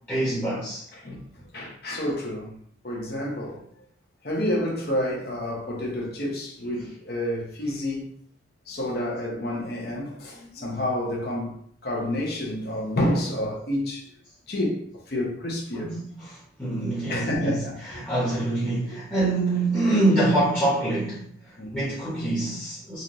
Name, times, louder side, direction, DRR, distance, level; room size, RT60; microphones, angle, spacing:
voice 1, 0.1-0.8 15.7-21.3 21.7-23.0, right 2 dB, 10° left, 0.9 m, -25 dB
voice 2, 0.9-2.5 2.8-3.6 4.2-8.1 8.7-11.6 11.8-14.0 14.5-15.9 17.1-18.3 18.9-19.0 21.6-21.9, left 1 dB, 55° left, 0.9 m, -29 dB
4.0 x 2.5 x 3.1 m
head